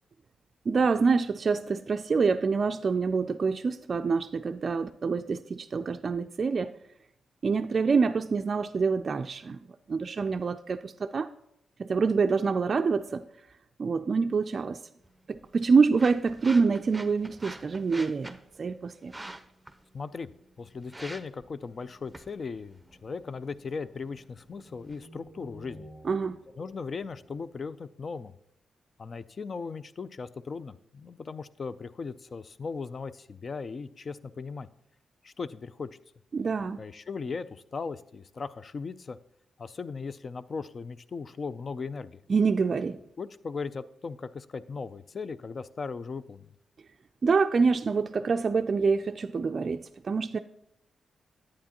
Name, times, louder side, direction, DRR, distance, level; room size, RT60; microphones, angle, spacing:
voice 1, 0.7-6.7 7.4-11.3 11.8-13.2 13.8-14.8 15.3-19.3 26.0-26.4 36.3-36.8 42.3-43.0 47.2-50.4, right 5 dB, 50° right, 0.3 m, -26 dB
sound 1, 15.0-25.0, right 2 dB, 10° right, 0.6 m, -48 dB
voice 2, 19.9-20.3 20.6-25.9 26.6-28.3 29.0-34.7 35.2-35.9 36.8-39.2 39.6-42.2 43.2-46.5, left 4 dB, 50° left, 0.4 m, -38 dB
sound 2, 20.7-27.7, right 1 dB, 20° left, 1.9 m, -54 dB
11.0 x 8.5 x 2.9 m
cardioid pair, 70°, 0 cm